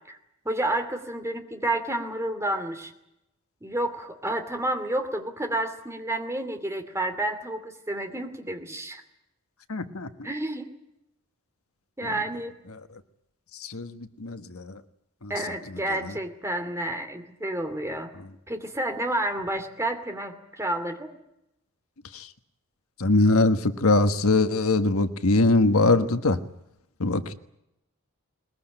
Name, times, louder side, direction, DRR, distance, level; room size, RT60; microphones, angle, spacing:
voice 1, 0.4-2.9 3.6-9.0 10.2-10.7 12.0-12.5 15.3-18.1 18.5-21.1, right 1 dB, 10° right, 6 dB, 2.5 m, -30 dB
voice 2, 9.7-10.1 12.0-12.1 13.6-14.8 15.2-15.3 22.1-22.3 23.0-26.4 27.0-27.3, left 2 dB, 75° left, 10 dB, 1.3 m, -22 dB
21.5 x 21.0 x 9.0 m, 0.85 s
head